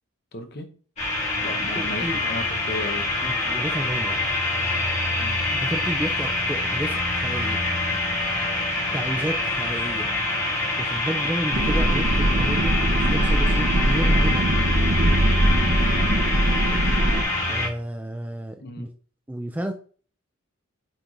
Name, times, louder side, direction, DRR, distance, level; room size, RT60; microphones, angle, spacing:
voice 1, 0.3-0.7 1.4-3.1 5.1-5.4 18.6-18.9, left 1 dB, 50° left, 0.9 m, -35 dB
sound 1, 1.0-17.7, left 2 dB, 30° left, 1.9 m, -25 dB
voice 2, 1.8-2.2 3.2-4.2 5.5-7.6 8.9-10.1 10.5-14.5 17.5-18.9 19.3-19.7, right 1 dB, 10° right, 0.3 m, -31 dB
sound 2, 11.5-17.2, right 1 dB, 85° right, 0.9 m, -22 dB
8.7 x 4.5 x 2.5 m
head